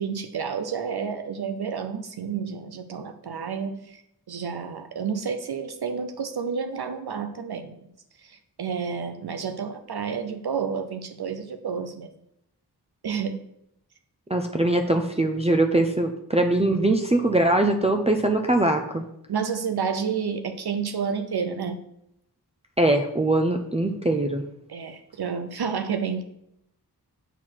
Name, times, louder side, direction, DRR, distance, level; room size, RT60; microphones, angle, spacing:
voice 1, 0.0-4.0 4.3-7.8 8.2-12.1 13.0-13.4 19.3-21.9 24.7-26.2, right 6 dB, 70° right, 8 dB, 0.6 m, -30 dB
voice 2, 14.3-19.0 22.8-24.4, right 2 dB, 15° right, 3 dB, 0.6 m, -22 dB
7.9 x 4.4 x 4.5 m, 0.79 s
wide cardioid pair, 55°, 40 cm